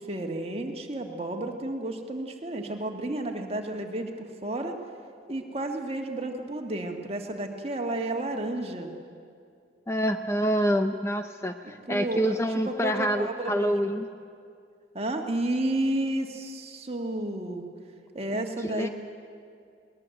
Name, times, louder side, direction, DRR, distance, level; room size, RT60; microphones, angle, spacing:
voice 1, 0.0-4.1 4.4-4.7 5.3-8.9 11.9-12.4 12.6-13.9 14.9-17.6 18.2-18.9, right 1 dB, 35° right, 3 dB, 1.7 m, -31 dB
voice 2, 9.9-14.1 18.6-18.9, equal, 15° left, 7 dB, 0.6 m, -27 dB
20.5 x 19.5 x 7.8 m, 2.4 s
head